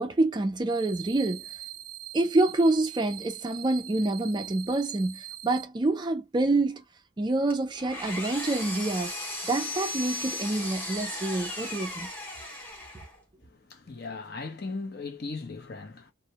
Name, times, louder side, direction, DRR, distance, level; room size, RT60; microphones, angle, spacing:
voice 1, 0.0-1.4 2.1-6.8 7.2-9.1 9.4-12.1, right 2 dB, 20° right, 0.3 m, -27 dB
sound 1, 0.7-5.7, right 13 dB, 90° right, 0.4 m, -43 dB
Engine, 7.5-13.2, left 1 dB, 10° left, 0.8 m, -36 dB
voice 2, 13.4-16.1, left 3 dB, 50° left, 0.6 m, -38 dB
2.2 x 2.0 x 2.7 m
head